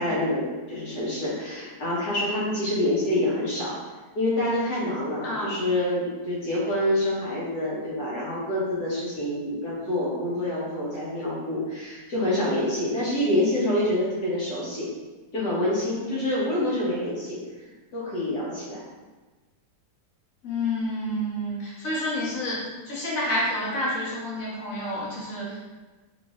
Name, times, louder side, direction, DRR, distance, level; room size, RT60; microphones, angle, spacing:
voice 1, 0.0-3.8 4.2-14.9 15.3-18.8, left 1 dB, 70° left, -7 dB, 1.9 m, -27 dB
voice 2, 20.4-22.6 22.9-25.6, left 1 dB, 55° left, -6 dB, 1.6 m, -29 dB
4.1 x 4.1 x 2.5 m, 1.3 s
omnidirectional pair, 1.8 m